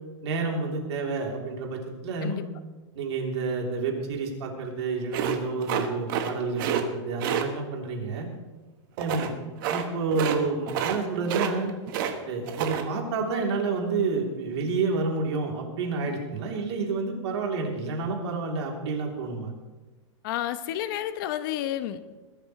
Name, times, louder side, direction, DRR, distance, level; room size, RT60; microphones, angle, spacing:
voice 1, 0.2-2.4 2.9-8.3 9.0-9.3 9.7-11.7 12.3-19.5, right 4 dB, 60° right, 0 dB, 3.3 m, -29 dB
sound 1, 5.1-6.3 6.6-6.8 7.2-7.5 9.0-9.3 9.6-9.8 10.1-10.4 10.7-11.0 11.2-12.1 12.4-12.8, right 9 dB, 45° right, 1.4 m, -28 dB
voice 2, 20.2-22.0, left 12 dB, 45° left, 11 dB, 0.9 m, -31 dB
20.5 x 12.5 x 3.2 m, 1.2 s
supercardioid pair, 160°, 16 cm